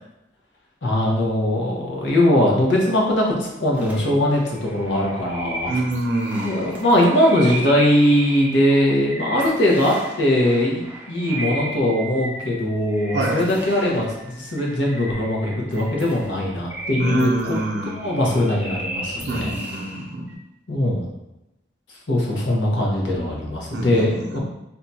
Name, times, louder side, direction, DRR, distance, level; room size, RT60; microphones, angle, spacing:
voice 1, 0.8-5.7 6.4-17.6 17.9-19.6 20.7-21.1 22.1-24.4, left 1 dB, 80° left, -2 dB, 0.9 m, -20 dB
sound 1, 3.7-20.3, right 1 dB, 10° right, 0.5 m, -35 dB
voice 2, 5.6-6.7 13.1-13.5 17.0-18.2 19.3-20.3 23.7-24.4, right 2 dB, 65° right, 0 dB, 0.6 m, -26 dB
2.7 x 2.3 x 4.1 m, 0.93 s
head